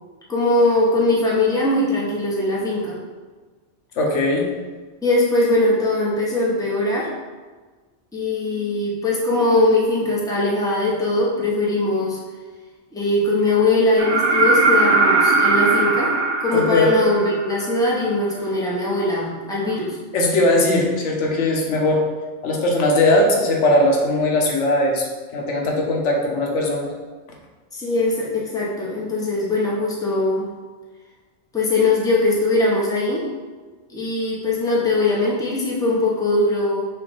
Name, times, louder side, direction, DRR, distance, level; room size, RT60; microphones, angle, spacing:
voice 1, 0.3-3.0 5.0-7.1 8.1-12.2 12.9-16.1 16.4-20.0 27.7-30.5 31.5-33.3 33.9-36.9, left 2 dB, 5° left, -5 dB, 0.7 m, -21 dB
voice 2, 4.0-4.5 16.5-17.0 20.1-22.1 22.4-25.1 25.3-26.9, left 1 dB, 85° left, 0 dB, 1.1 m, -19 dB
sound 1, 14.0-17.8 19.7-19.8, right 3 dB, 55° right, 1.2 m, -19 dB
6.0 x 2.4 x 3.5 m, 1.4 s
omnidirectional pair, 1.2 m